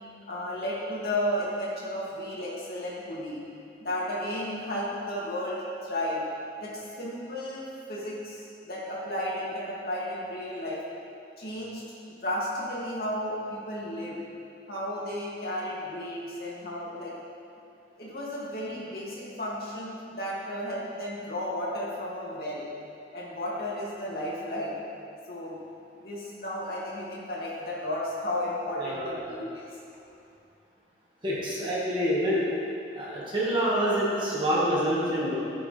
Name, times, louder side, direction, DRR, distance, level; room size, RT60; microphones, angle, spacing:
voice 1, 0.3-3.4 3.8-6.2 6.6-10.8 11.4-11.8 12.2-14.2 14.7-17.1 18.0-22.7 23.1-24.8 25.3-25.6 26.0-29.7, left 1 dB, 55° left, -6 dB, 2.6 m, -33 dB
voice 2, 28.7-29.4 31.2-32.5 32.9-35.4, equal, 25° right, -7 dB, 1.9 m, -27 dB
14.5 x 8.7 x 3.4 m, 2.6 s
head